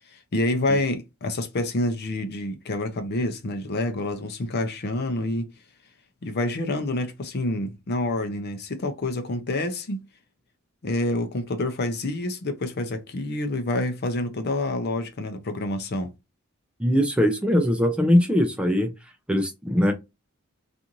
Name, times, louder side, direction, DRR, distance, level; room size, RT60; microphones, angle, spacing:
voice 1, 0.3-5.5 6.2-10.1 10.8-16.1, left 2 dB, 50° left, 0.6 m, -27 dB
voice 2, 16.8-18.9 19.3-19.9, equal, 5° right, 0.4 m, -21 dB
2.5 x 2.5 x 2.9 m
head